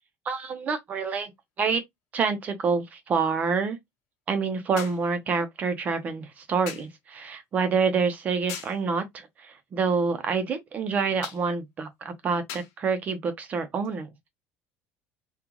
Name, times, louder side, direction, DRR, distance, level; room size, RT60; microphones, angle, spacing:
voice 1, 0.3-1.3 1.6-1.8 2.1-3.8 4.3-14.1, right 5 dB, 30° right, 0.7 m, -27 dB
sound 1, 1.0-1.1 4.8-5.1 6.7-7.0 8.5-8.8 11.2-11.5 12.5-12.8 13.8-14.0, left 8 dB, 90° left, 1.1 m, -39 dB
3.8 x 2.4 x 2.9 m
cardioid pair, 175°, 6 cm